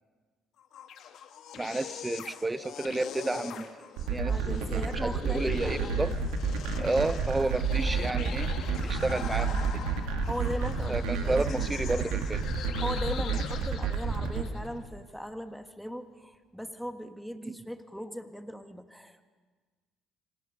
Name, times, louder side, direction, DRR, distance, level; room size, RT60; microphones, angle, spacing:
sound 1, 0.6-14.7, left 8 dB, 60° left, 1.3 m, -42 dB
voice 1, 1.5-4.4 4.7-6.2 6.8-8.5 8.8-9.8 10.9-12.4 17.4-17.6, right 2 dB, 20° right, 17 dB, 0.7 m, -31 dB
sound 2, 4.0-14.4, right 5 dB, 75° right, 1.9 m, -30 dB
voice 2, 4.2-6.1 10.3-11.0 11.2-11.6 12.8-19.3, equal, ahead, 8 dB, 1.5 m, -39 dB
26.5 x 18.5 x 5.4 m, 1.4 s
hypercardioid pair, 55°, 0 cm